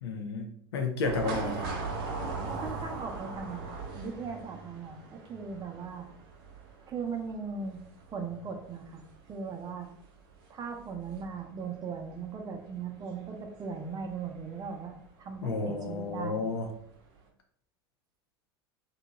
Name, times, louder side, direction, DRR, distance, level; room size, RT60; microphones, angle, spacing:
voice 1, 0.0-1.6 15.4-16.7, left 3 dB, 80° left, 4 dB, 0.6 m, -32 dB
sound 1, 1.0-15.1 15.4-15.5 16.5-16.8 17.1-17.2, right 4 dB, 60° right, 0.7 m, -41 dB
voice 2, 1.2-1.8 2.4-3.7 3.9-6.1 6.9-7.8 8.1-9.0 9.3-9.9 10.5-16.4, right 5 dB, 30° right, 4 dB, 0.5 m, -38 dB
2.8 x 2.2 x 2.9 m, 0.67 s
hypercardioid pair, 85°, 13 cm